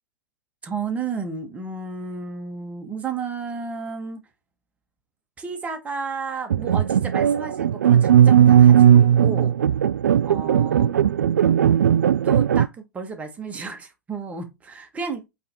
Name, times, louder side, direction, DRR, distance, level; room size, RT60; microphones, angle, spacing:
voice 1, 0.6-4.2 5.4-9.5 10.2-10.9 12.2-15.2, right 5 dB, 15° right, 1.5 m, -32 dB
sound 1, 6.5-12.7, right 9 dB, 60° right, 0.4 m, -17 dB
8.4 x 3.5 x 4.3 m
figure-of-eight pair, 105°, 10 cm